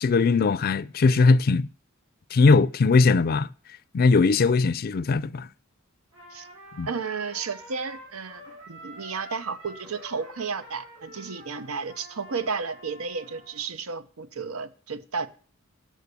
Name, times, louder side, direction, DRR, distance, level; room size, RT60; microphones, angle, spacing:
voice 1, 0.0-1.7 2.3-3.5 3.9-5.5 6.8-6.9, left 4 dB, 45° left, 0.4 m, -20 dB
Trumpet, 6.1-13.7, equal, 70° right, 5.4 m, -47 dB
voice 2, 6.9-15.3, right 5 dB, 90° right, 0.8 m, -33 dB
8.3 x 6.5 x 8.2 m
head